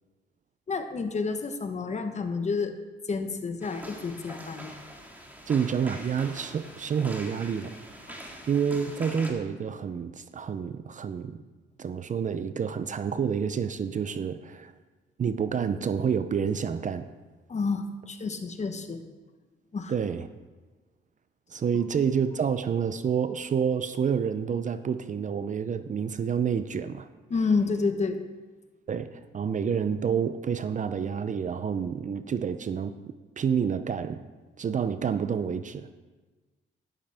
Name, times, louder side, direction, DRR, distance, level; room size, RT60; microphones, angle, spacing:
voice 1, 0.7-2.7 3.1-4.7 8.1-8.2 17.5-19.0 19.7-19.9 27.3-28.2, left 4 dB, 35° left, 7 dB, 1.2 m, -29 dB
sound 1, 3.6-9.3, equal, 10° right, 2.1 m, -44 dB
voice 2, 5.5-7.8 8.1-11.4 11.8-14.7 15.2-17.1 19.9-20.3 21.5-27.1 28.9-29.1 29.3-34.2 34.6-35.9, right 7 dB, 40° right, 12 dB, 0.6 m, -28 dB
12.0 x 11.5 x 3.5 m, 1.3 s
cardioid pair, 90°, 20 cm